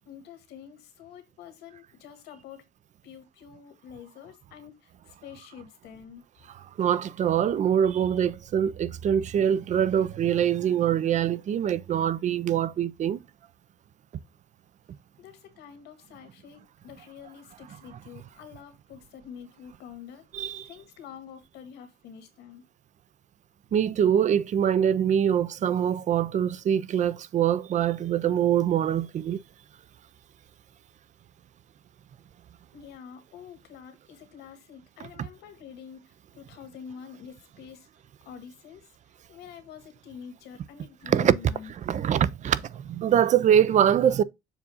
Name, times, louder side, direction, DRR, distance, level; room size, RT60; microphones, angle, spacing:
voice 1, 0.0-2.6 3.0-6.2 15.2-20.2 20.6-22.6 32.7-37.9 38.2-38.8 39.3-41.7, left 7 dB, 85° left, 1.6 m, -46 dB
voice 2, 6.8-13.2 20.3-20.7 23.7-29.4 41.1-41.3 41.8-44.2, right 9 dB, 45° right, 0.5 m, -24 dB
7.1 x 2.5 x 5.4 m
cardioid pair, 110°, 17 cm